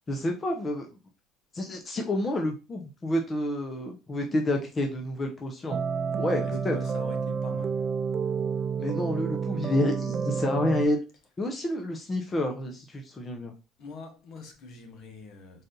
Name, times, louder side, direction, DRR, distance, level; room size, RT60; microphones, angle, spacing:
voice 1, 0.1-0.9 1.5-5.8 6.2-6.8 8.8-11.0 11.4-13.5, left 1 dB, 25° left, 0.8 m, -29 dB
sound 1, 5.7-10.9, right 6 dB, 40° right, 0.4 m, -30 dB
voice 2, 6.3-7.8 13.8-15.6, left 3 dB, 60° left, 1.1 m, -44 dB
4.1 x 2.6 x 3.7 m
cardioid pair, 105°, 0 cm